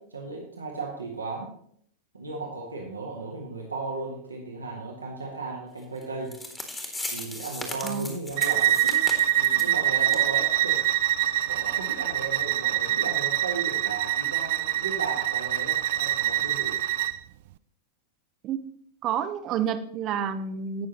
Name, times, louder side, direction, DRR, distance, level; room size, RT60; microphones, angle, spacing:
voice 1, 0.0-1.5 2.1-6.3 7.1-9.1 9.4-10.8 11.5-16.8, right 3 dB, 75° right, -1 dB, 1.6 m, -36 dB
sound 1, 6.0-6.1 6.3-9.7 10.1-10.3 10.6-10.7 11.2-11.3, left 2 dB, 10° left, 1.8 m, -37 dB
Bowed string instrument, 8.4-17.2, right 14 dB, 50° right, 0.4 m, -25 dB
voice 2, 19.0-20.9, right 8 dB, 35° right, 11 dB, 0.8 m, -29 dB
17.0 x 6.3 x 3.0 m, 0.64 s
figure-of-eight pair, 90°, 0 cm